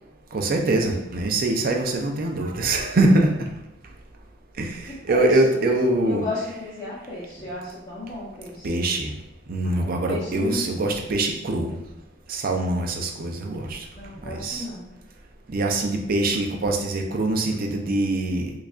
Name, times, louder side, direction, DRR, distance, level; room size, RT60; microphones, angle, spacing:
voice 1, 0.3-3.3 4.6-6.2 8.6-9.1 9.5-11.7 12.3-13.9 14.3-14.7 15.5-18.5, right 2 dB, 50° right, 3 dB, 0.5 m, -23 dB
voice 2, 4.9-5.4 6.0-8.8 9.6-10.7 13.9-14.9, left 2 dB, 20° left, -10 dB, 0.8 m, -34 dB
4.6 x 2.4 x 2.4 m, 0.93 s
head